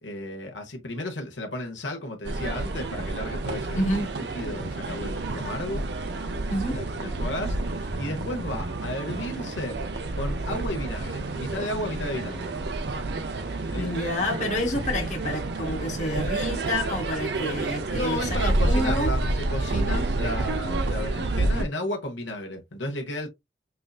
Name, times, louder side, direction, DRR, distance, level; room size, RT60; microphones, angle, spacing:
voice 1, 0.0-3.8 4.3-5.8 6.7-9.8 10.1-12.5 13.7-13.9 17.9-23.3, left 1 dB, 75° left, 1.2 m, -33 dB
sound 1, 2.2-21.6, right 2 dB, 60° right, 0.6 m, -29 dB
voice 2, 3.7-4.2 6.5-6.8 13.8-19.1, left 1 dB, 40° left, 1.3 m, -29 dB
5.5 x 2.7 x 2.4 m
head